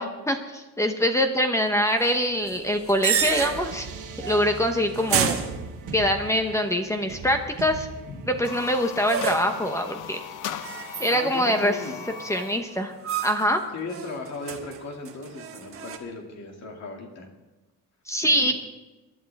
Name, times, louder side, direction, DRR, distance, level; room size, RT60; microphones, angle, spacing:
voice 1, 0.0-3.9 4.2-5.4 5.9-7.9 8.3-10.2 11.0-11.8 12.2-12.9 13.2-13.6 18.1-18.5, equal, 10° left, 5 dB, 0.9 m, -24 dB
sound 1, 2.3-13.0, right 5 dB, 70° right, 1.8 m, -43 dB
sound 2, 2.5-3.8 4.2-4.6 4.9-6.2 9.1-9.7 10.6-11.4 11.8-12.4 13.0-13.6 13.9-16.0, right 8 dB, 45° right, 1.2 m, -30 dB
voice 2, 8.1-8.4 11.1-11.9 13.7-17.3 18.2-18.5, left 3 dB, 55° left, 2 dB, 2.4 m, -37 dB
sound 3, 8.3-12.7, left 10 dB, 75° left, 0.9 m, -38 dB
22.0 x 11.5 x 3.5 m, 1.1 s
cardioid pair, 170°, 32 cm